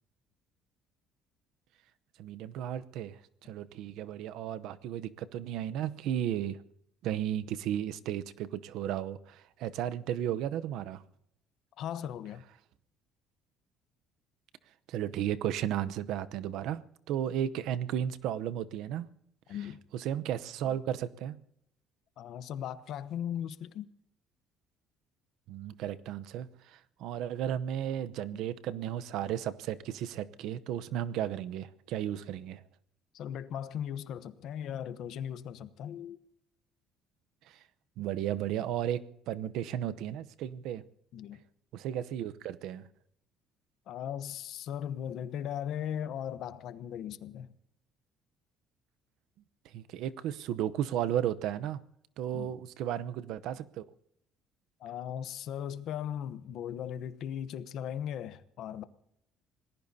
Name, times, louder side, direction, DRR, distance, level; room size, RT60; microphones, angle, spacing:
voice 1, 2.2-6.6 7.0-11.0 14.9-16.8 17.1-19.1 19.9-21.4 25.5-32.6 37.5-37.6 38.0-40.8 41.7-42.9 49.6-51.8 52.2-53.9, right 10 dB, 70° right, 0.8 m, -34 dB
voice 2, 11.8-12.4 19.5-19.8 22.2-23.9 33.1-36.2 41.1-41.4 43.9-47.5 52.3-52.5 54.8-58.8, left 9 dB, 55° left, 0.9 m, -38 dB
27.0 x 19.0 x 2.8 m
cardioid pair, 150°, 0 cm